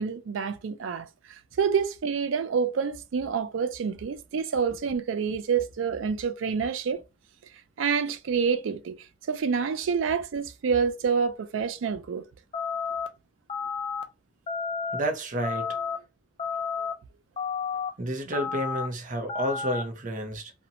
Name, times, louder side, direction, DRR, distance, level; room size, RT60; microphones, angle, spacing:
voice 1, 0.0-7.0 7.8-12.2 16.8-16.9, right 6 dB, 90° right, 0.4 m, -28 dB
sound 1, 12.5-13.1 13.5-14.0 14.5-15.0 15.4-16.0 16.4-16.9 17.4-17.9 18.3-18.9 19.3-19.8, left 5 dB, 30° left, 0.3 m, -31 dB
voice 2, 14.9-15.7 18.0-20.5, right 1 dB, 45° right, 0.6 m, -30 dB
2.6 x 2.1 x 2.7 m
head